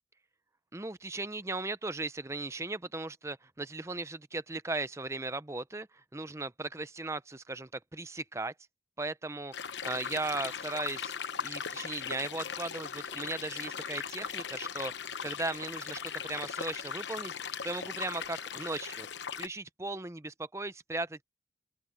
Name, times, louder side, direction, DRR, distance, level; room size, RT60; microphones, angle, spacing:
voice 1, 0.7-8.5 9.0-9.5 9.8-11.1 11.4-17.4 17.6-19.1 19.4-21.2, right 2 dB, 15° right, 0.6 m, -37 dB
sound 1, 9.5-19.5, left 7 dB, 75° left, 0.9 m, -39 dB
open air
head